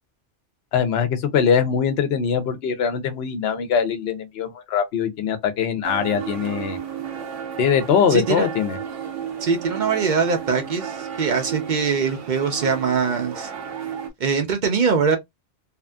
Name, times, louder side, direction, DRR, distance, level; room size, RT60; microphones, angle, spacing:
voice 1, 0.7-6.8 7.6-8.8, left 7 dB, 65° left, 0.8 m, -22 dB
sound 1, 5.8-14.1, right 8 dB, 85° right, 1.0 m, -33 dB
voice 2, 8.1-8.5 9.4-13.5 14.2-15.2, right 5 dB, 55° right, 0.6 m, -22 dB
2.6 x 2.5 x 2.2 m
omnidirectional pair, 1.2 m